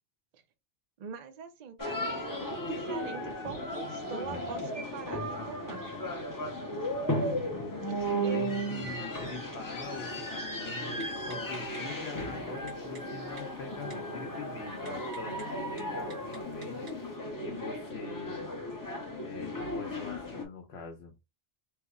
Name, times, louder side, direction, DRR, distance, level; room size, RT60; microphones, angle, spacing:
voice 1, 1.0-5.8 8.2-8.5, right 7 dB, 55° right, 0.5 m, -42 dB
sound 1, 1.8-20.4, equal, 25° left, 0.6 m, -35 dB
voice 2, 7.4-16.9 17.4-18.5 19.2-21.1, left 3 dB, 85° left, 1.0 m, -44 dB
Typing, 10.9-17.2, right 3 dB, 80° right, 1.5 m, -56 dB
3.2 x 2.0 x 3.6 m
omnidirectional pair, 1.1 m